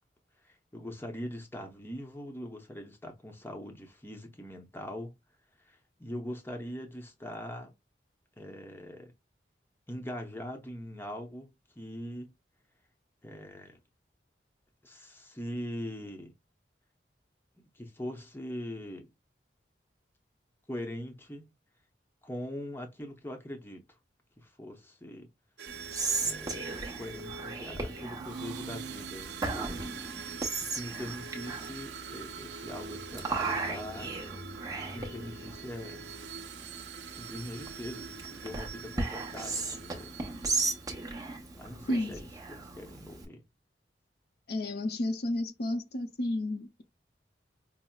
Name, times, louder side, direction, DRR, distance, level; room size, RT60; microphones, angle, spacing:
voice 1, 0.4-5.1 5.7-7.7 8.4-9.1 9.9-11.5 11.8-12.3 13.2-13.8 14.8-16.3 17.7-19.1 20.7-21.5 22.2-24.0 24.4-25.3 26.2-30.0 30.7-34.1 34.8-36.1 37.1-40.2 41.6-43.4, left 1 dB, 15° left, 0.8 m, -42 dB
sound 1, 25.6-41.2, right 6 dB, 70° right, 0.5 m, -44 dB
Whispering, 25.7-43.2, right 3 dB, 20° right, 0.9 m, -37 dB
voice 2, 44.5-46.8, left 1 dB, 65° left, 0.7 m, -31 dB
5.6 x 2.0 x 2.3 m
head